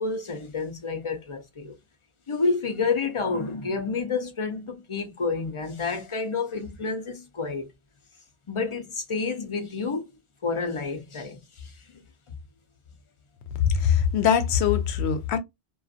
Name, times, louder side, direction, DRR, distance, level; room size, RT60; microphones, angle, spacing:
voice 1, 0.0-1.8 2.3-7.7 8.5-10.1 10.4-12.0, left 4 dB, 35° left, 0.5 m, -29 dB
voice 2, 13.6-15.4, left 8 dB, 85° left, 0.8 m, -22 dB
2.5 x 2.4 x 2.3 m
omnidirectional pair, 1.1 m